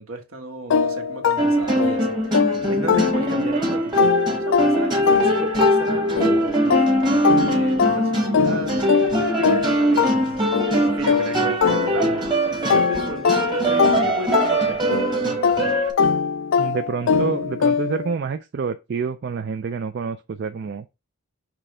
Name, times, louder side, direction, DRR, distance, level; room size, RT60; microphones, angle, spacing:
voice 1, 0.0-2.1 2.7-4.0 4.4-6.6 7.4-8.8 9.4-10.2 10.8-14.8, right 1 dB, 70° right, 1.5 m, -34 dB
sound 1, 0.7-3.6 4.0-12.3 12.7-18.1, left 6 dB, 55° left, 0.3 m, -22 dB
sound 2, 1.4-15.9, right 1 dB, 20° right, 1.3 m, -22 dB
voice 2, 16.6-20.9, right 5 dB, 45° right, 0.3 m, -28 dB
6.0 x 3.3 x 4.8 m
head